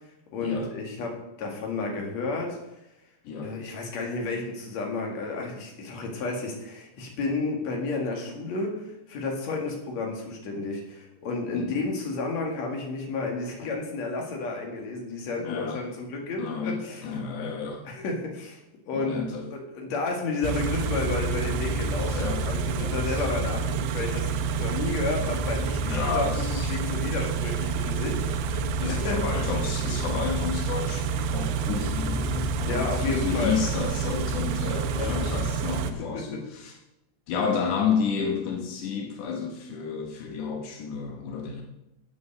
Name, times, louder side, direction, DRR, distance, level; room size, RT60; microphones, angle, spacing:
voice 1, 0.3-2.6 3.4-17.1 17.8-19.2 19.7-24.3 24.6-26.2 26.5-29.2 32.6-33.6 35.0-35.3 36.1-36.2, left 3 dB, 50° left, 1 dB, 2.5 m, -31 dB
voice 2, 3.2-3.6 11.5-11.9 15.4-15.8 16.4-17.9 18.9-19.5 22.0-22.4 22.7-23.2 25.8-26.8 28.8-36.8 37.3-41.6, left 5 dB, 80° left, 2 dB, 1.8 m, -31 dB
Car / Idling, 20.4-35.9, right 4 dB, 85° right, 3.0 m, -28 dB
9.4 x 7.5 x 6.4 m, 0.90 s
omnidirectional pair, 5.1 m